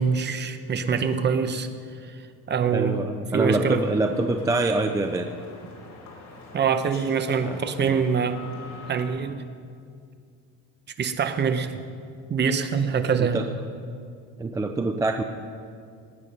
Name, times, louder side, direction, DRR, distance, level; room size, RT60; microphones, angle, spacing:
voice 1, 0.0-1.7 2.5-3.0 3.3-3.8 6.5-8.4 8.9-9.5 11.0-11.8 12.3-13.4, right 6 dB, 30° right, 9 dB, 0.8 m, -24 dB
voice 2, 2.7-5.3 7.5-8.0 13.2-13.5 14.4-15.2, right 2 dB, 10° right, 6 dB, 0.3 m, -25 dB
sound 1, 3.7-9.1, left 3 dB, 55° left, 3.2 m, -44 dB
19.0 x 8.9 x 5.4 m, 2.3 s
cardioid pair, 155°, 37 cm